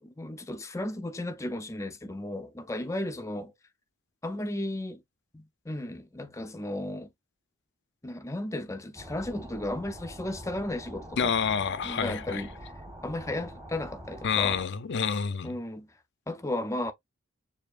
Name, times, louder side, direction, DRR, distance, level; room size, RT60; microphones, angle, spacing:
voice 1, 0.0-3.5 4.2-5.0 5.3-7.1 8.0-11.3 11.8-12.5 13.0-14.6 15.4-15.9 16.3-16.9, left 1 dB, 15° left, 0.5 m, -34 dB
sound 1, 8.9-14.6, equal, 15° right, 1.2 m, -45 dB
voice 2, 11.2-12.4 14.2-15.5, left 6 dB, 55° left, 0.6 m, -28 dB
6.7 x 2.8 x 2.4 m
head